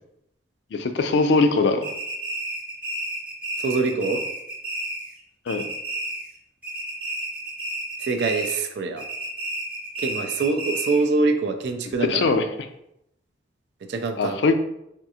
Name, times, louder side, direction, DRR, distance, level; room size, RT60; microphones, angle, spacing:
voice 1, 0.7-1.8 5.5-5.6 12.1-12.4 14.2-14.5, left 3 dB, 80° left, 8 dB, 0.4 m, -21 dB
sound 1, 1.8-5.2 5.5-6.4 6.6-8.7 9.0-11.1, right 1 dB, 10° right, 0.8 m, -31 dB
voice 2, 3.6-4.2 8.0-9.0 10.0-12.3 13.9-14.4, right 3 dB, 80° right, 6 dB, 0.4 m, -24 dB
3.5 x 2.4 x 2.7 m, 0.79 s
head